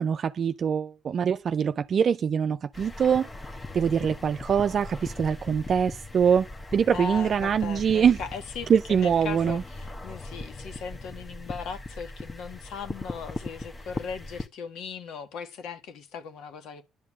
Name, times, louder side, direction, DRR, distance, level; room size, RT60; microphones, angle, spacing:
voice 1, 0.0-3.3 3.7-6.5 6.7-8.2 8.7-9.6, right 7 dB, 50° right, 0.5 m, -24 dB
sound 1, 2.7-14.5, left 2 dB, 25° left, 1.1 m, -39 dB
voice 2, 6.9-16.8, left 5 dB, 75° left, 1.5 m, -38 dB
11.0 x 6.2 x 7.4 m
supercardioid pair, 65°, 0 cm